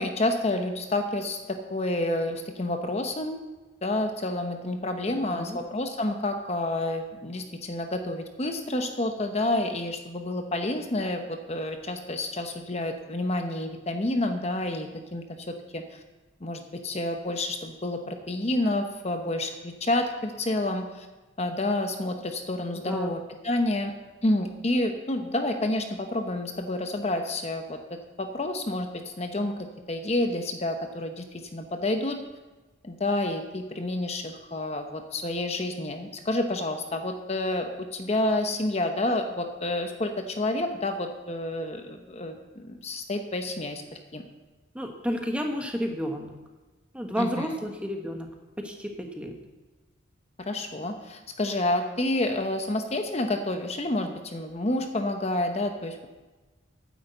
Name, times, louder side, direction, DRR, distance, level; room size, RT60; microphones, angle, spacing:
voice 1, 0.0-3.4 3.8-16.0 16.4-21.1 21.4-23.9 24.2-27.8 28.2-28.9 29.2-29.5 29.9-32.2 32.8-43.8 44.1-44.3 47.2-47.5 50.4-56.1, left 1 dB, 35° left, 5 dB, 0.8 m, -29 dB
voice 2, 5.0-5.6 22.9-23.1 44.7-46.4 46.9-48.3 48.6-49.3, equal, 5° right, 3 dB, 1.2 m, -31 dB
9.8 x 8.0 x 8.0 m, 1.2 s
head